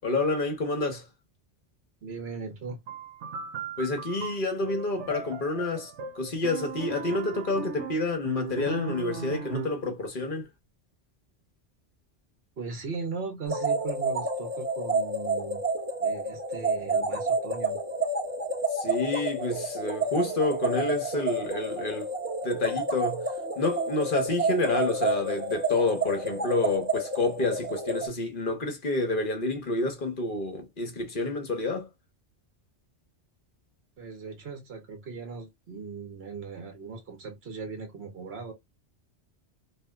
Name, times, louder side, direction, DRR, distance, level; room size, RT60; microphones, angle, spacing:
voice 1, 0.0-1.0 3.8-10.5 18.7-22.1 22.4-23.3 23.6-31.9, left 2 dB, 50° left, 1.1 m, -29 dB
voice 2, 2.0-2.8 12.6-15.6 16.0-17.8 34.0-38.5, right 4 dB, 60° right, 1.2 m, -38 dB
sound 1, 2.9-9.9, right 5 dB, 80° right, 1.0 m, -37 dB
sound 2, 13.5-28.1, right 2 dB, 10° right, 0.9 m, -29 dB
2.8 x 2.7 x 2.2 m
omnidirectional pair, 1.2 m